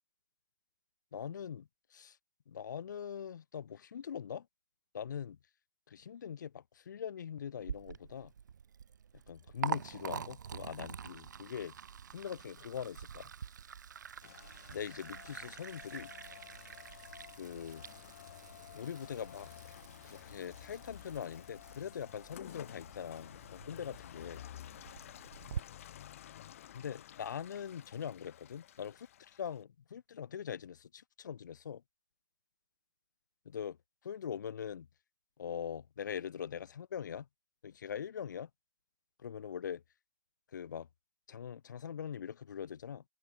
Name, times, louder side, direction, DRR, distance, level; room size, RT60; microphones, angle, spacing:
voice 1, 1.1-2.2 2.5-4.5 4.9-5.4 5.9-8.3 9.3-11.7 12.1-13.3 14.7-16.1 17.4-17.8 18.7-19.5 20.0-24.4 26.7-31.8 33.4-33.8 34.0-34.9 35.4-37.3 37.6-38.5 39.2-39.8 40.5-40.9 41.3-43.0, left 8 dB, 85° left, 1.0 m, -42 dB
Liquid, 7.6-25.6, right 7 dB, 85° right, 2.7 m, -46 dB
Rain, 14.2-29.6, left 11 dB, 50° left, 3.2 m, -53 dB
hypercardioid pair, 170°, 10 cm